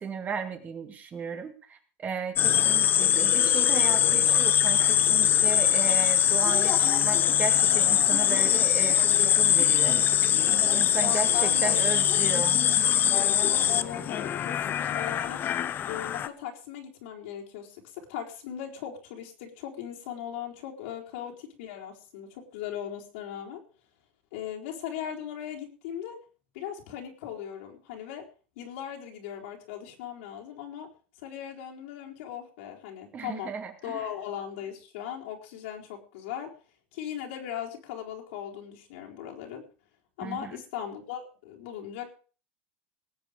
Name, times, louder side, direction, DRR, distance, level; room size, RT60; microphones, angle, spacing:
voice 1, 0.0-6.7 7.0-10.0 10.5-12.6 33.1-34.1 40.2-40.6, right 6 dB, 25° right, 7 dB, 2.2 m, -35 dB
sound 1, 2.4-16.3, left 10 dB, 30° left, 0.8 m, -23 dB
voice 2, 11.0-11.8 12.2-12.5 13.7-15.4 15.9-23.6 24.3-26.2 26.5-28.2 28.6-30.9 31.2-33.5 33.8-36.5 36.9-39.6 40.2-42.1, left 9 dB, 70° left, 0 dB, 4.2 m, -38 dB
19.0 x 8.2 x 5.2 m, 0.38 s
supercardioid pair, 135°, 7 cm